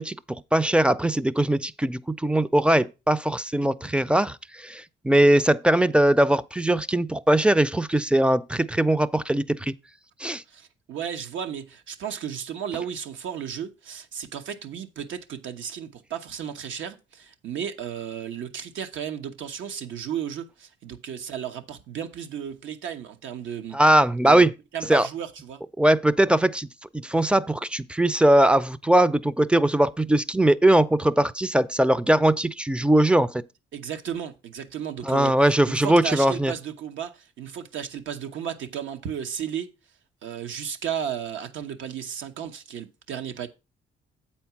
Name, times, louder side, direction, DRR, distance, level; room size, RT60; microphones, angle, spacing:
voice 1, 0.0-9.7 10.2-10.4 23.7-24.5 24.9-25.1 25.8-26.7 27.0-33.4 35.0-36.5, right 1 dB, 5° right, 0.4 m, -20 dB
voice 2, 10.5-23.8 24.2-24.5 24.7-25.6 33.7-39.7 40.2-43.5, right 8 dB, 75° right, 1.1 m, -34 dB
8.1 x 4.4 x 5.8 m
cardioid pair, 90°, 20 cm